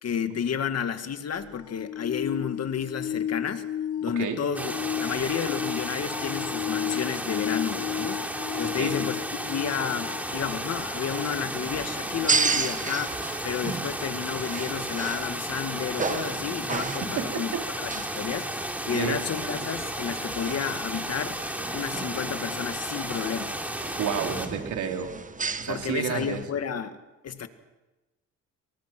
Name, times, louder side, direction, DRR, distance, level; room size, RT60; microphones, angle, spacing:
voice 1, 0.0-3.7 4.0-18.5 18.9-21.4 21.7-23.5 25.7-27.0 27.2-27.5, left 7 dB, 55° left, 9 dB, 2.0 m, -31 dB
sound 1, 1.3-11.1 13.4-13.5, left 10 dB, 80° left, 1.2 m, -34 dB
sound 2, 4.5-24.5, right 1 dB, 5° right, 3.4 m, -33 dB
voice 2, 8.6-9.0 17.0-17.7 18.1-18.3 18.9-19.2 23.9-25.1 25.6-26.4, right 7 dB, 75° right, 3 dB, 3.7 m, -31 dB
sound 3, 10.3-26.4, right 4 dB, 25° right, 1.1 m, -34 dB
29.5 x 23.0 x 6.1 m, 1.1 s
cardioid pair, 90°, 30 cm